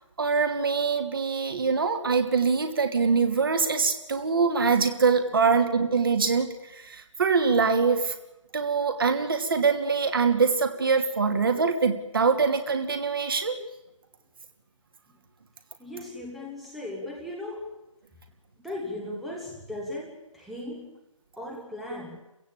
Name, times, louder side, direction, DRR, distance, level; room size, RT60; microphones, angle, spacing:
voice 1, 0.2-8.1 8.5-13.6, right 5 dB, 40° right, 5 dB, 2.9 m, -24 dB
voice 2, 15.8-17.8 18.6-21.0 21.4-22.2, left 1 dB, ahead, -3 dB, 1.3 m, -37 dB
29.5 x 16.0 x 8.8 m, 0.94 s
figure-of-eight pair, 155°, 17 cm